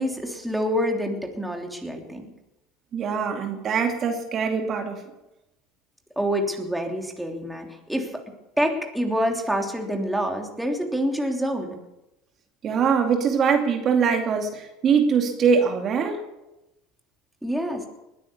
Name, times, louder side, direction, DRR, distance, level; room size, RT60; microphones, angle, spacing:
voice 1, 0.0-2.2 6.2-8.2 8.6-11.8 17.4-17.9, equal, 5° right, 2 dB, 3.2 m, -27 dB
voice 2, 2.9-5.0 12.6-16.3, right 6 dB, 45° right, 3 dB, 2.6 m, -22 dB
20.5 x 9.8 x 7.1 m, 0.95 s
hypercardioid pair, 80°, 0 cm